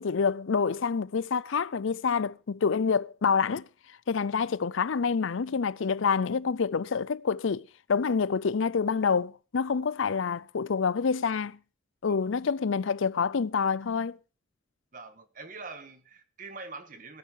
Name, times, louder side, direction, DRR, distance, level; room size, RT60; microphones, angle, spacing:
voice 1, 0.0-3.6 4.1-11.6 12.0-14.2, left 5 dB, 80° left, 0.5 m, -27 dB
voice 2, 14.9-17.2, right 3 dB, 45° right, 1.5 m, -44 dB
16.0 x 9.3 x 5.0 m
head